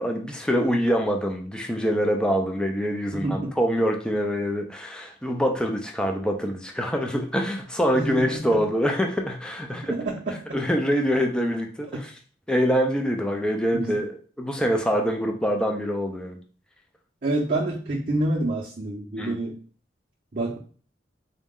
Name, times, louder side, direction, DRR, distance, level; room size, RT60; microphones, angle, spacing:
voice 1, 0.0-10.0 10.5-12.1 12.5-16.4 19.2-19.4, equal, 5° left, 3 dB, 0.3 m, -25 dB
voice 2, 3.1-3.6 7.9-8.6 9.7-10.4 13.7-14.0 17.2-19.6 20.3-20.6, right 1 dB, 50° right, -3 dB, 0.6 m, -28 dB
3.9 x 2.1 x 3.5 m, 0.42 s
head